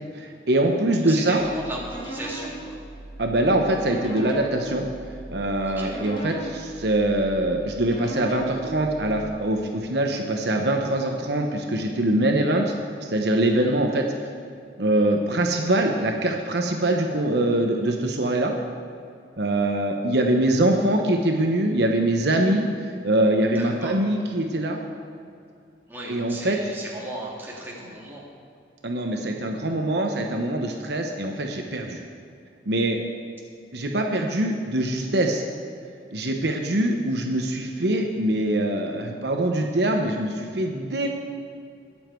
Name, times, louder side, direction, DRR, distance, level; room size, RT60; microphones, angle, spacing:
voice 1, 0.1-1.4 3.2-4.9 5.3-12.7 13.0-14.0 14.8-18.5 19.4-22.7 23.0-24.8 26.1-26.6 28.8-32.0 32.7-33.0 33.7-35.4 36.1-41.1, right 1 dB, 65° right, 3 dB, 1.0 m, -23 dB
voice 2, 0.9-2.8 5.6-5.9 13.5-13.7 23.6-24.0 25.9-28.2 30.6-30.8, right 1 dB, 10° right, -4 dB, 2.2 m, -36 dB
sound 1, 1.4-9.3, right 2 dB, 25° left, 1.9 m, -38 dB
21.0 x 7.3 x 4.6 m, 2.5 s
head